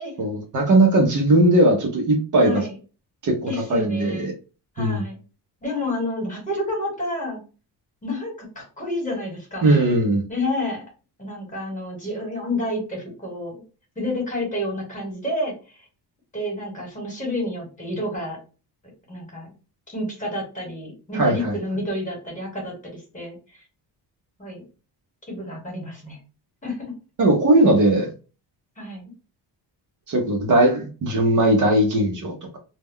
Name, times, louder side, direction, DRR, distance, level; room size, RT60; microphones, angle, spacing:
voice 1, 0.2-2.6 3.2-4.3 4.8-5.1 9.6-10.2 21.1-21.5 27.2-28.1 30.1-32.6, right 1 dB, 50° right, 1 dB, 0.7 m, -19 dB
voice 2, 2.4-2.8 3.5-4.3 4.7-5.2 5.6-7.4 8.0-9.8 10.3-10.8 11.2-13.6 13.9-15.8 16.3-18.4 19.1-19.5 19.9-23.6 24.4-24.6 25.3-26.2 26.6-26.9 28.8-29.1, left 1 dB, 20° left, -1 dB, 1.3 m, -29 dB
2.2 x 2.2 x 3.5 m, 0.34 s
cardioid pair, 140°, 41 cm